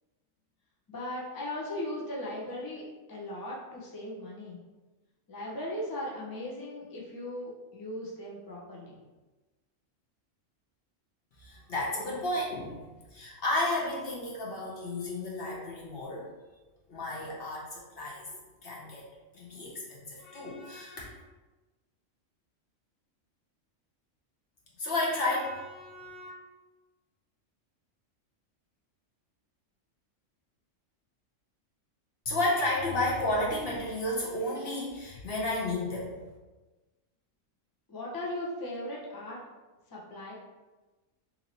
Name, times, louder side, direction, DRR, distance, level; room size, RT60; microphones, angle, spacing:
voice 1, 0.9-4.6 5.3-9.0 37.9-39.4 39.9-40.3, left 1 dB, 25° left, -5 dB, 0.5 m, -38 dB
voice 2, 11.4-12.8 13.1-16.3 16.9-18.3 18.6-19.0 19.3-21.2 24.8-26.3 32.2-36.3, left 1 dB, 50° left, -4 dB, 0.9 m, -32 dB
3.0 x 2.7 x 3.9 m, 1.2 s
omnidirectional pair, 1.4 m